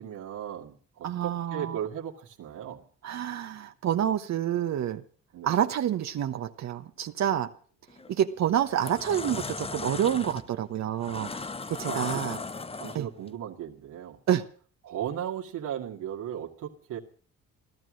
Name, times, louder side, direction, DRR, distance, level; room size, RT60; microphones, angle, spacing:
voice 1, 0.0-2.8 5.3-5.6 11.9-12.4 12.8-14.2 14.9-17.0, right 9 dB, 85° right, 2.1 m, -36 dB
voice 2, 1.0-1.8 3.0-5.0 5.4-7.5 8.1-11.3 11.7-12.4 12.9-13.1 14.3-14.5, right 10 dB, 65° right, 1.1 m, -28 dB
sound 1, 7.9-8.1 8.6-13.3, left 4 dB, 20° left, 0.7 m, -37 dB
16.0 x 12.5 x 6.3 m
cardioid pair, 90°, 30 cm